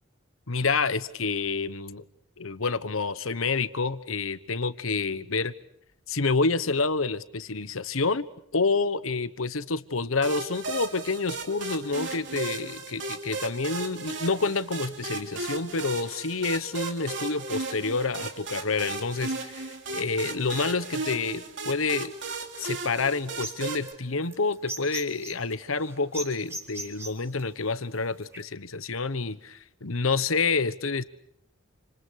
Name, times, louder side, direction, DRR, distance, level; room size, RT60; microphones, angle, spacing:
voice 1, 0.5-2.0 2.4-5.5 6.1-8.3 8.5-22.1 22.6-31.0, left 4 dB, 90° left, 1.2 m, -28 dB
sound 1, 10.2-23.9, right 3 dB, 65° right, 3.2 m, -36 dB
sound 2, 23.3-28.4, right 2 dB, 15° right, 3.8 m, -40 dB
29.0 x 27.0 x 6.5 m
head